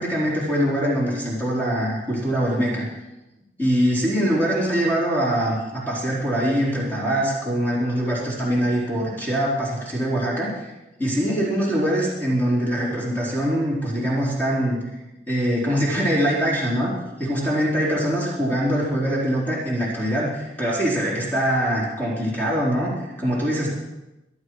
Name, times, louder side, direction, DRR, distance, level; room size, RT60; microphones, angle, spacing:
voice 1, 0.0-2.9 3.6-10.7 11.0-15.0 15.3-16.9 17.2-23.7, equal, 10° left, -6 dB, 4.2 m, -23 dB
25.0 x 8.8 x 4.9 m, 1.0 s
head